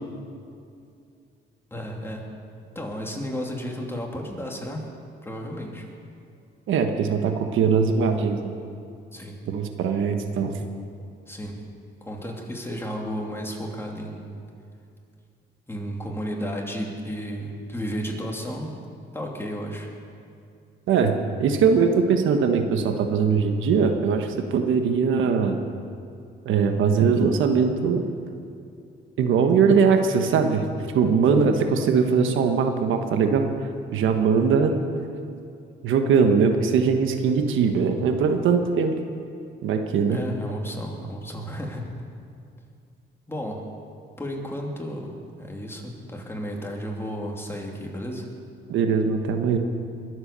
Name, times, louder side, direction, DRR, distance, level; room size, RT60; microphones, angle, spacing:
voice 1, 1.7-2.3 2.7-4.9 5.2-5.9 9.1-9.4 11.3-11.6 12.0-14.4 15.7-18.8 19.1-19.9 40.1-41.9 43.3-43.6 44.2-48.3, equal, 10° left, -1 dB, 2.8 m, -33 dB
voice 2, 6.7-8.5 9.5-10.6 20.9-21.1 21.4-25.6 26.4-28.0 29.2-30.6 30.9-33.5 33.9-34.8 35.8-38.9 39.6-40.2 48.7-49.6, right 5 dB, 80° right, 6 dB, 1.3 m, -21 dB
21.5 x 8.1 x 6.8 m, 2.4 s
cardioid pair, 90°, 20 cm